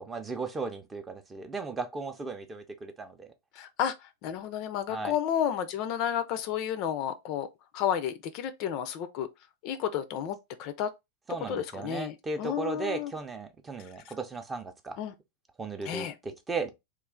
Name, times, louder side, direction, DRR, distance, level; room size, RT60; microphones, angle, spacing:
voice 1, 0.0-3.3 4.9-5.2 11.3-15.0 15.6-16.7, right 3 dB, 15° right, 0.6 m, -36 dB
voice 2, 3.6-3.9 4.2-7.5 7.7-9.3 9.6-10.9 11.5-13.1 15.0-15.1 15.8-16.1, left 9 dB, 40° left, 0.4 m, -31 dB
3.1 x 2.4 x 3.6 m
figure-of-eight pair, 90°, 0 cm